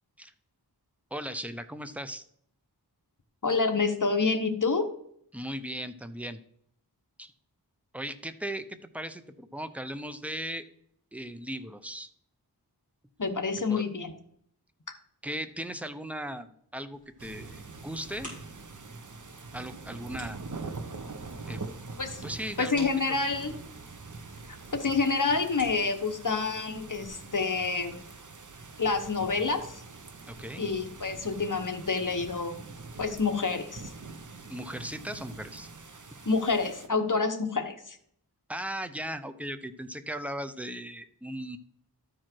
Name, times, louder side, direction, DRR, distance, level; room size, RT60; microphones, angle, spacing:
voice 1, 1.1-2.2 5.3-6.4 7.2-7.3 7.9-10.6 11.1-12.1 13.7-13.8 15.2-16.5 16.7-18.3 19.5-20.4 21.5-21.7 22.2-23.2 30.3-30.6 34.5-35.7 38.5-41.6, right 1 dB, 5° right, 10 dB, 0.7 m, -37 dB
voice 2, 3.4-4.9 13.2-14.1 22.0-22.2 22.6-23.5 24.7-28.0 28.8-29.8 30.6-32.6 33.0-33.8 36.2-38.0, left 4 dB, 50° left, 6 dB, 1.2 m, -28 dB
sound 1, 16.9-27.1, equal, 20° right, 4.5 m, -53 dB
sound 2, 17.2-36.9, right 3 dB, 50° right, 0.9 m, -44 dB
13.0 x 4.7 x 4.5 m, 0.67 s
wide cardioid pair, 50°, 40 cm